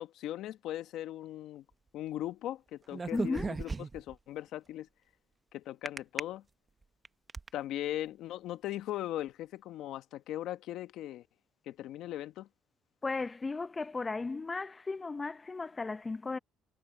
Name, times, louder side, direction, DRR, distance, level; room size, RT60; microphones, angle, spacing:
voice 1, 0.0-1.6 1.9-4.9 5.5-6.4 7.5-11.2 11.7-12.5, left 13 dB, 75° left, 1.3 m, -39 dB
sound 1, 2.9-4.1 5.9-6.2 6.8-7.5, right 4 dB, 25° right, 1.0 m, -35 dB
voice 2, 3.1-3.5 13.0-16.4, left 3 dB, 25° left, 0.6 m, -35 dB
supercardioid pair, 80°, 0 cm